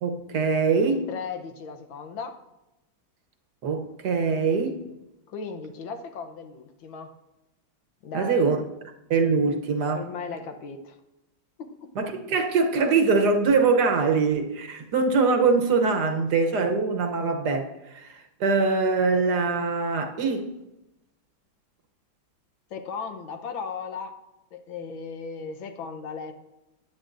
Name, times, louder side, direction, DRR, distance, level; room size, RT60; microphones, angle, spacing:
voice 1, 0.0-1.1 3.6-4.8 8.1-8.6 9.1-10.0 12.0-20.5, right 4 dB, 60° right, 5 dB, 1.4 m, -23 dB
voice 2, 1.1-2.4 5.3-7.1 8.0-8.5 9.9-11.0 11.6-11.9 22.7-24.1 24.5-26.3, left 5 dB, 80° left, 7 dB, 1.7 m, -36 dB
15.0 x 10.0 x 2.6 m, 0.95 s
omnidirectional pair, 2.1 m